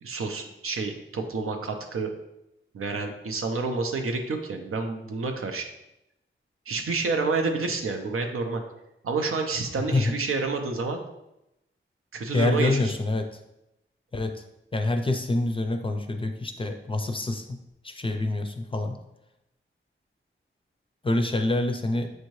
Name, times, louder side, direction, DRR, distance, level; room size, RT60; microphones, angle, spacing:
voice 1, 0.0-2.1 2.7-5.7 6.7-8.6 9.0-11.0 12.1-12.9, right 3 dB, 85° right, 4 dB, 0.6 m, -29 dB
voice 2, 9.8-10.1 12.3-13.4 14.1-14.4 14.7-17.6 17.8-19.0 21.0-22.1, left 2 dB, 25° left, 5 dB, 0.4 m, -26 dB
6.3 x 2.7 x 3.1 m, 0.87 s
wide cardioid pair, 110°, 21 cm